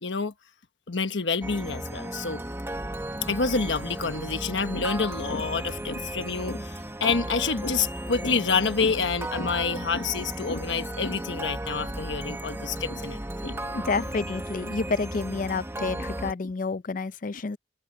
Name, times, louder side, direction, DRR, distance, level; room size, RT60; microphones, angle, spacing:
voice 1, 0.0-0.3 0.9-2.4 3.3-13.6, left 5 dB, 80° left, 1.2 m, -28 dB
sound 1, 1.4-16.3, right 1 dB, 15° right, 1.1 m, -35 dB
voice 2, 13.7-17.6, left 4 dB, 45° left, 0.5 m, -29 dB
head